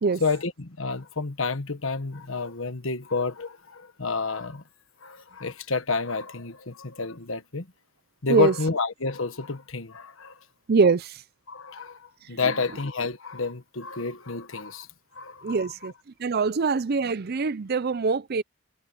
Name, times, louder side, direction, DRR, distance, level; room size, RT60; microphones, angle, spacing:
voice 1, 0.2-4.6 5.0-7.7 8.2-10.4 11.5-14.9 15.1-15.7, left 4 dB, 65° left, 1.5 m, -29 dB
voice 2, 10.7-11.2 12.4-12.5 15.4-15.9 16.2-18.4, right 4 dB, 45° right, 0.5 m, -23 dB
head